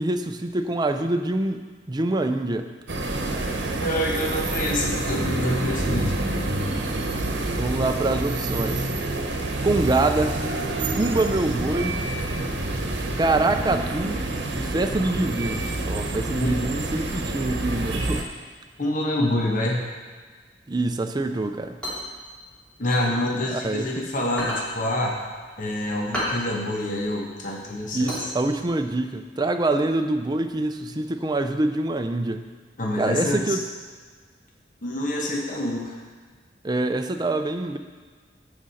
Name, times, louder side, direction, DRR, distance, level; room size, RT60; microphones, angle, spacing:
voice 1, 0.0-2.7 7.6-8.9 9.6-10.4 11.0-12.0 13.2-14.2 14.5-18.3 20.7-21.8 23.4-24.1 27.9-32.5 33.0-33.6 36.6-37.8, right 2 dB, 25° right, 7 dB, 0.5 m, -25 dB
sound 1, 2.9-18.2, right 2 dB, 90° right, 0.9 m, -27 dB
voice 2, 3.8-6.2 16.4-16.6 18.8-19.8 22.8-25.2 25.6-28.2 32.8-33.6 34.8-36.0, left 1 dB, 50° left, -1 dB, 1.1 m, -26 dB
sound 2, 21.6-23.9 24.2-28.9, equal, 5° left, 2.6 m, -33 dB
14.0 x 5.1 x 4.2 m, 1.5 s
head